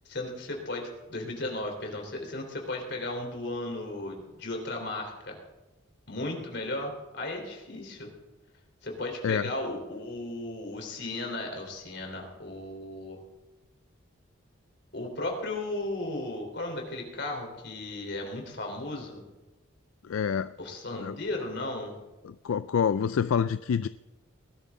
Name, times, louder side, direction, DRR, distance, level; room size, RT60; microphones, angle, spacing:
voice 1, 0.1-5.4 6.1-8.1 8.8-13.2 14.9-19.2 20.6-21.9, left 2 dB, 55° left, 2 dB, 3.7 m, -35 dB
voice 2, 20.0-20.5 20.9-21.2 22.2-23.9, left 7 dB, 80° left, 14 dB, 0.4 m, -27 dB
19.5 x 13.0 x 3.7 m, 1.1 s
head